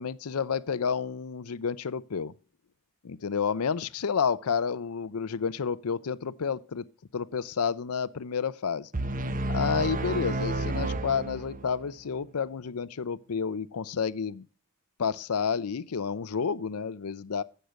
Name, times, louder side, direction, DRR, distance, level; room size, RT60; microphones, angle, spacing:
voice 1, 0.0-2.3 3.0-6.9 7.1-8.9 9.5-14.4 15.0-17.4, left 6 dB, 85° left, 0.6 m, -30 dB
sound 1, 8.9-11.9, right 1 dB, 40° right, 1.0 m, -31 dB
15.0 x 6.6 x 8.0 m
head